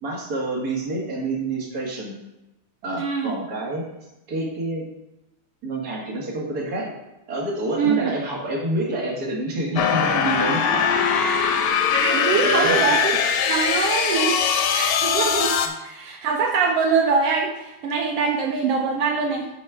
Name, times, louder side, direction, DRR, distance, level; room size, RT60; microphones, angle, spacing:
voice 1, 0.0-2.2 2.8-3.8 4.3-4.8 5.6-6.9 7.3-11.2 12.3-12.9 15.6-15.7, right 2 dB, 35° right, -3 dB, 1.9 m, -28 dB
voice 2, 3.0-3.3 7.8-8.1 11.9-13.1 13.5-15.5 15.8-19.5, right 5 dB, 80° right, 1 dB, 1.3 m, -23 dB
sound 1, 9.8-15.7, left 7 dB, 75° left, 2.0 m, -21 dB
9.7 x 4.3 x 4.8 m, 0.95 s
omnidirectional pair, 3.6 m